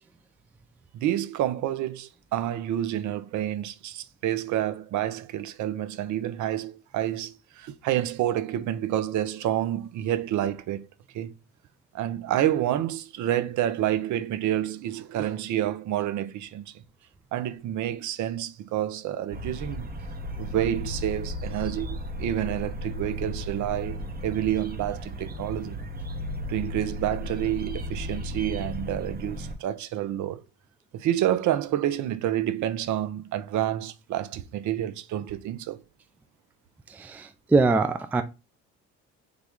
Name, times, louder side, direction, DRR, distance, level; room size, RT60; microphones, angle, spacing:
voice 1, 0.9-10.8 11.1-11.3 11.9-16.8 17.3-19.9 20.4-25.8 26.5-30.4 30.9-35.8, right 12 dB, 55° right, 0.6 m, -28 dB
sound 1, 19.3-29.5, equal, 25° right, 0.9 m, -35 dB
voice 2, 36.9-38.2, right 3 dB, 5° right, 0.3 m, -23 dB
3.2 x 2.4 x 3.5 m
hypercardioid pair, 65°, 35 cm